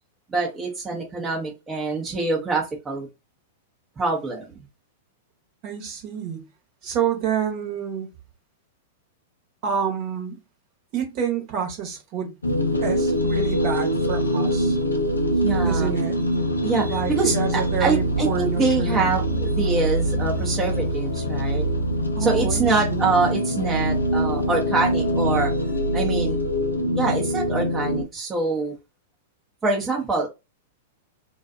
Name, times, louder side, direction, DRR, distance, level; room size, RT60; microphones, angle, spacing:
voice 1, 0.3-3.1 4.0-4.5 15.3-15.9 16.6-21.7 22.2-25.5 25.9-26.4 26.9-28.7 29.6-30.3, right 3 dB, 15° right, 0.7 m, -25 dB
voice 2, 5.6-6.5 6.8-8.1 9.6-10.4 10.9-12.3 12.7-14.8 15.6-16.2 16.9-19.1 22.2-23.1, right 8 dB, 45° right, 1.0 m, -28 dB
sound 1, 12.4-28.0, equal, 85° left, 0.5 m, -24 dB
2.4 x 2.2 x 2.6 m
figure-of-eight pair, 100°, 0 cm